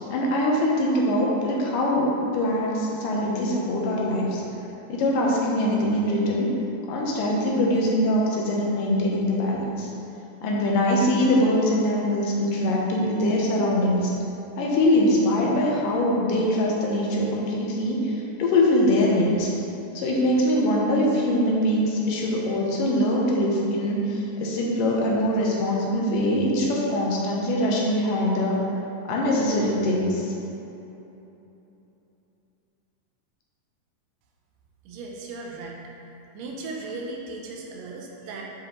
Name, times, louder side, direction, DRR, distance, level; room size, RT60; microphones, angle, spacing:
voice 1, 0.1-4.4 4.9-6.5 6.9-9.9 10.4-14.1 14.6-19.5 19.9-28.6 29.1-30.3, left 1 dB, 85° left, -3 dB, 2.5 m, -23 dB
voice 2, 34.9-35.8 36.3-38.4, right 3 dB, 85° right, -1 dB, 2.4 m, -36 dB
8.9 x 5.0 x 3.1 m, 3.0 s
omnidirectional pair, 3.8 m